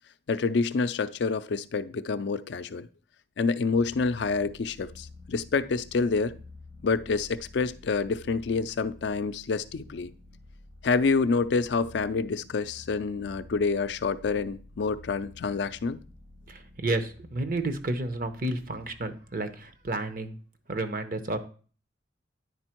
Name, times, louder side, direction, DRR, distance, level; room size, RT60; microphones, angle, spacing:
voice 1, 0.3-2.9 3.4-6.4 6.8-10.1 10.8-16.0, left 4 dB, 65° left, 0.4 m, -27 dB
sound 1, 3.6-20.3, left 2 dB, 80° right, 4.0 m, -51 dB
voice 2, 16.5-20.4 20.7-21.4, right 2 dB, 50° right, 0.8 m, -31 dB
9.8 x 4.3 x 4.5 m
head